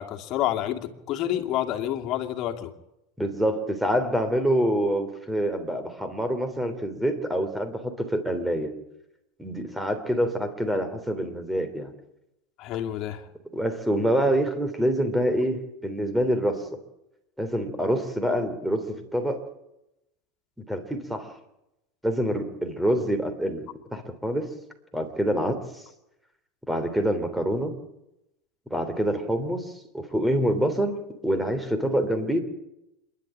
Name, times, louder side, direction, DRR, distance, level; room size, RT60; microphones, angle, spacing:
voice 1, 0.0-2.7 12.6-13.2, left 12 dB, 45° left, 3 dB, 2.6 m, -29 dB
voice 2, 3.2-8.7 9.4-11.9 13.5-16.6 17.4-19.4 20.7-21.3 22.0-24.5 24.9-25.8 26.7-27.7 28.7-29.7 29.9-31.0 31.2-32.4, equal, 5° right, 8 dB, 3.3 m, -26 dB
27.5 x 11.5 x 9.0 m, 0.87 s
supercardioid pair, 125°, 0 cm